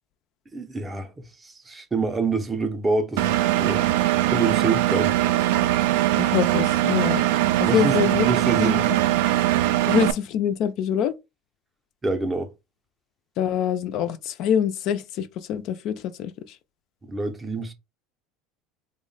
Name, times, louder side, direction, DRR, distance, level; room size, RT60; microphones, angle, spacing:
voice 1, 0.5-3.9 4.3-5.1 7.6-9.0 12.0-12.5 17.0-17.7, right 3 dB, 15° right, 0.5 m, -27 dB
Engine, 3.2-10.1, right 14 dB, 75° right, 0.3 m, -21 dB
voice 2, 6.2-7.2 7.6-8.3 8.6-8.8 9.9-11.1 13.4-16.3, left 9 dB, 45° left, 0.3 m, -25 dB
3.5 x 2.1 x 3.8 m
cardioid pair, 160°, 0 cm